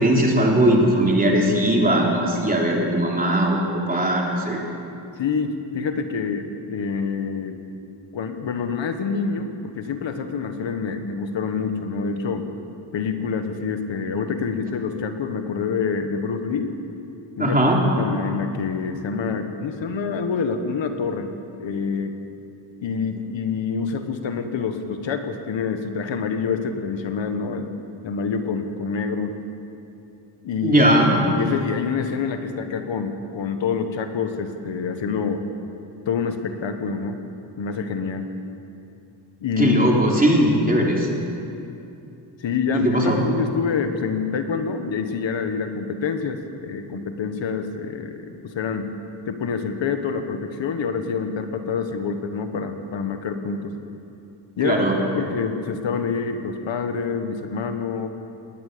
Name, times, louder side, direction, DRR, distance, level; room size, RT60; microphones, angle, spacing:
voice 1, 0.0-3.6 3.9-4.6 17.4-17.8 30.6-31.1 39.6-41.1 42.7-43.2 54.6-54.9, right 1 dB, 20° right, -2 dB, 3.4 m, -19 dB
voice 2, 5.2-7.6 8.1-12.5 12.9-16.7 17.4-17.6 18.0-21.3 21.6-22.1 22.8-27.7 28.0-29.4 30.4-30.8 31.4-35.4 36.1-37.2 37.6-38.3 39.4-39.7 42.4-46.4 46.6-48.9 49.3-53.7 54.6-58.1, left 5 dB, 75° left, 7 dB, 1.6 m, -27 dB
20.0 x 19.0 x 6.9 m, 2.7 s
wide cardioid pair, 150°, 45 cm